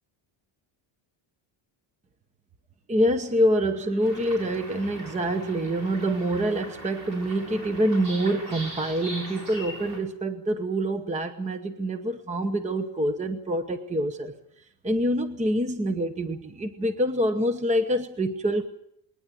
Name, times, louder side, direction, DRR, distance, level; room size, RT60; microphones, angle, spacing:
voice 1, 2.9-14.3 14.8-18.7, right 1 dB, 15° right, 0.9 m, -26 dB
sound 1, 4.0-10.0, right 1 dB, 40° right, 7.0 m, -40 dB
21.5 x 19.0 x 7.6 m
cardioid pair, 170°, 47 cm